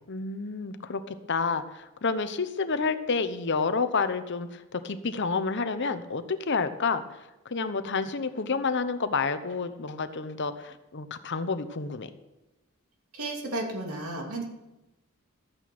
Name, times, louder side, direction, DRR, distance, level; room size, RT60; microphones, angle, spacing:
voice 1, 0.1-7.0 7.4-12.1, left 4 dB, 55° left, 11 dB, 0.9 m, -29 dB
voice 2, 13.1-14.4, right 2 dB, 85° right, 1 dB, 2.8 m, -33 dB
13.5 x 8.9 x 6.1 m, 1.0 s
head